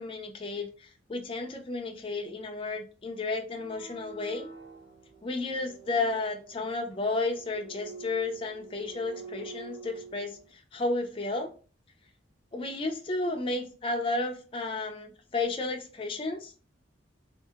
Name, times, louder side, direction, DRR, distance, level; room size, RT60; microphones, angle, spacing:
voice 1, 0.0-4.5 5.2-11.5 12.5-16.5, left 3 dB, 30° left, 3 dB, 0.4 m, -32 dB
sound 1, 3.5-10.5, right 5 dB, 70° right, 0.9 m, -47 dB
2.7 x 2.4 x 2.4 m, 0.37 s
head